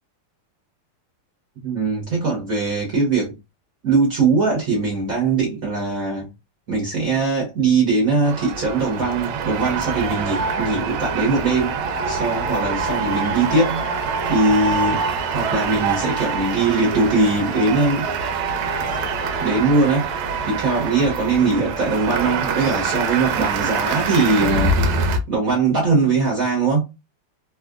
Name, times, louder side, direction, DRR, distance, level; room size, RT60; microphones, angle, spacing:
voice 1, 1.6-3.3 3.8-6.3 6.7-11.7 12.1-13.8 14.3-15.0 15.3-18.1 19.4-20.1 20.5-24.8 25.3-26.8, right 3 dB, 50° right, 1.2 m, -20 dB
sound 1, 8.2-25.2, right 4 dB, 75° right, 1.4 m, -25 dB
sound 2, 16.9-17.4 18.0-19.7 20.7-21.2 22.6-22.8, equal, 30° right, 0.4 m, -42 dB
3.6 x 2.4 x 2.3 m
omnidirectional pair, 2.4 m